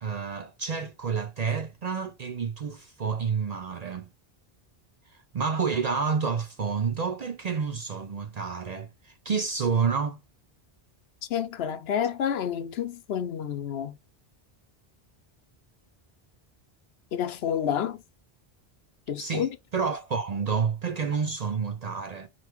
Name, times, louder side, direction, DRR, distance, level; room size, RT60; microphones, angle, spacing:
voice 1, 0.0-4.1 5.3-10.2 19.2-22.3, right 5 dB, 50° right, 0.5 m, -29 dB
voice 2, 11.3-13.9 17.1-18.0 19.1-19.5, left 8 dB, 80° left, 0.9 m, -29 dB
4.6 x 3.8 x 3.1 m
omnidirectional pair, 1.0 m